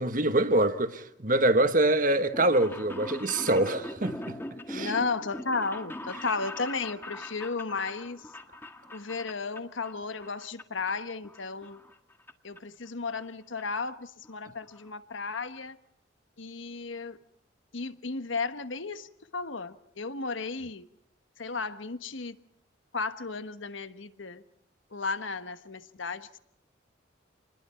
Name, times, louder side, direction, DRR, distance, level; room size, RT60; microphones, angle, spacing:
voice 1, 0.0-4.4 4.7-4.9, right 1 dB, 45° right, 1.4 m, -25 dB
sound 1, 2.3-9.9 10.2-10.9 11.2-12.3 12.6-12.7 13.6-13.7 13.9-14.0 14.2-14.3 14.6-14.9 15.3-15.4 15.6-15.7, left 1 dB, 10° left, 1.6 m, -41 dB
voice 2, 4.7-8.3 8.9-11.8 12.4-15.8 16.4-17.2 17.7-20.9 21.4-22.3 22.9-24.4 24.9-26.4, left 4 dB, 80° left, 1.3 m, -34 dB
28.5 x 21.0 x 5.7 m
head